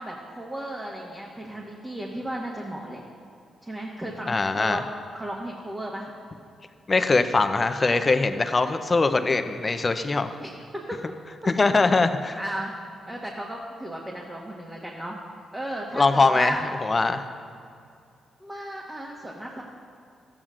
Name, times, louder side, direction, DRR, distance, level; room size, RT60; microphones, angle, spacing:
voice 1, 0.0-3.0 3.6-4.9 5.1-6.1 10.4-10.5 10.9-11.0 12.4-12.7 13.1-15.2 15.5-16.6 18.4-19.6, right 1 dB, 20° right, -3 dB, 1.4 m, -34 dB
voice 2, 4.3-4.8 6.9-10.3 11.5-12.4 15.9-17.2, left 3 dB, 35° left, 9 dB, 0.6 m, -22 dB
13.5 x 8.8 x 2.5 m, 2.4 s
supercardioid pair, 50°, 0 cm